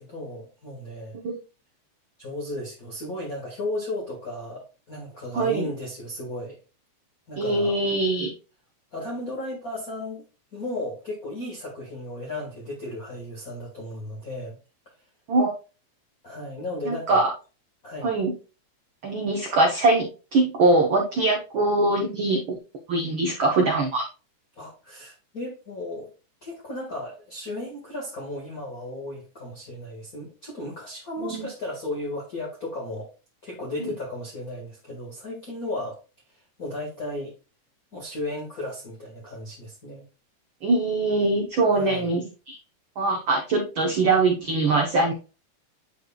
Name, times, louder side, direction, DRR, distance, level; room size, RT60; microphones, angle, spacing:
voice 1, 0.0-1.2 2.2-6.6 7.3-7.7 8.9-10.2 10.5-14.6 16.2-17.3 17.8-18.1 24.5-26.1 26.4-33.1 33.4-36.0 36.6-37.3 37.9-40.0 41.7-42.1, left 1 dB, 35° left, 1.7 m, -35 dB
voice 2, 5.3-5.7 7.4-8.3 15.3-15.5 16.8-17.3 18.0-18.3 19.0-22.6 22.9-24.1 31.2-31.5 40.6-42.6 43.0-45.1, right 2 dB, 70° right, 1.2 m, -22 dB
9.9 x 5.1 x 2.3 m
omnidirectional pair, 3.5 m